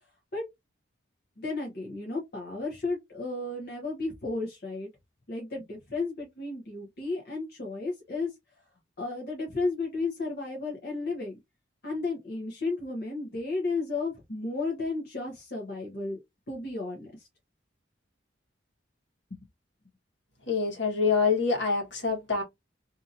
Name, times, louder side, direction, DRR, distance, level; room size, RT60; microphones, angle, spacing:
voice 1, 1.4-4.9 5.3-8.3 9.0-11.3 11.8-16.2 16.5-17.3 19.3-19.4, left 3 dB, 55° left, 0.8 m, -33 dB
voice 2, 20.5-22.4, left 4 dB, 70° left, 1.3 m, -26 dB
2.8 x 2.6 x 2.5 m
head